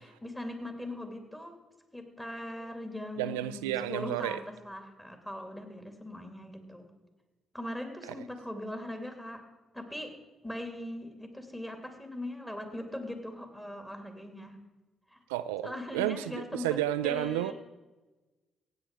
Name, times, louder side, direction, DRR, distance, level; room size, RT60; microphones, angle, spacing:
voice 1, 0.0-1.6 1.9-4.4 4.6-6.9 7.5-9.4 9.7-10.1 10.4-14.6 15.1-15.2 15.6-16.7 17.0-17.5, left 1 dB, 10° left, 5 dB, 2.9 m, -40 dB
voice 2, 3.2-4.4 15.3-17.5, right 13 dB, 85° right, 13 dB, 0.3 m, -31 dB
16.0 x 8.8 x 4.8 m, 1.2 s
hypercardioid pair, 45°, 0 cm